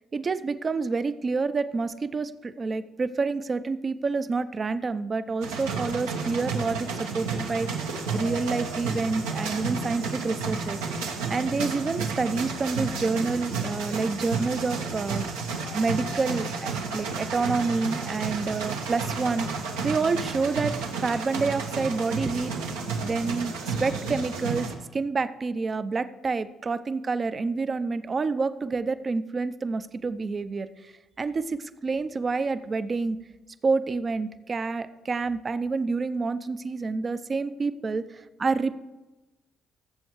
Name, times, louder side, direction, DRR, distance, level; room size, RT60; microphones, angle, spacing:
voice 1, 0.1-10.8 11.3-15.2 15.7-19.5 19.8-20.7 21.0-22.7 23.0-33.2 33.6-38.8, right 4 dB, 40° right, 13 dB, 0.6 m, -28 dB
sound 1, 5.4-24.7, right 4 dB, 85° right, 1.2 m, -31 dB
18.5 x 7.8 x 3.1 m, 1.1 s
hypercardioid pair, 50°, 0 cm